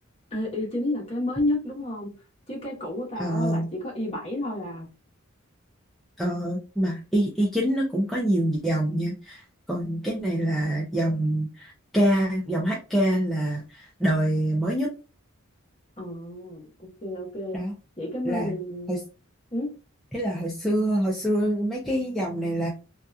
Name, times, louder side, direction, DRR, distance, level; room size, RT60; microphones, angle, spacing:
voice 1, 0.3-2.1 2.5-4.9 16.0-17.6 18.0-19.0 19.5-19.8, left 1 dB, 30° left, -2 dB, 1.0 m, -31 dB
voice 2, 3.2-3.6 6.2-14.9 17.5-17.7 18.2-18.5 18.9-19.0 20.1-22.7, right 1 dB, ahead, -4 dB, 0.4 m, -25 dB
2.7 x 2.3 x 2.3 m, 0.32 s
head